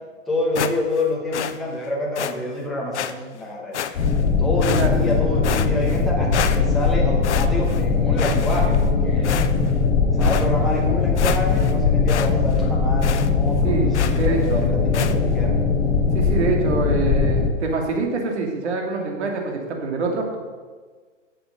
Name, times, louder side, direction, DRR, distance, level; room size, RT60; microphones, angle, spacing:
voice 1, 0.3-3.8 4.4-9.4 10.1-15.5, left 1 dB, ahead, -4 dB, 0.7 m, -27 dB
sound 1, 0.5-1.0 1.3-1.6 2.1-2.3 2.9-3.1 3.7-4.2 4.6-5.1 5.4-6.0 6.3-6.9 7.2-7.8 8.2-8.9 9.2-9.7 10.2-10.5 10.9-11.0 11.2-11.7 12.1-12.3 12.6-12.7 13.0-13.3 13.9-14.3 14.9-15.1, left 9 dB, 60° left, 0.7 m, -29 dB
sound 2, 3.9-17.5, left 4 dB, 40° left, 2.4 m, -20 dB
voice 2, 13.6-14.6 16.1-20.4, right 3 dB, 60° right, 1 dB, 2.7 m, -25 dB
11.0 x 7.8 x 5.1 m, 1.5 s
hypercardioid pair, 160°, 38 cm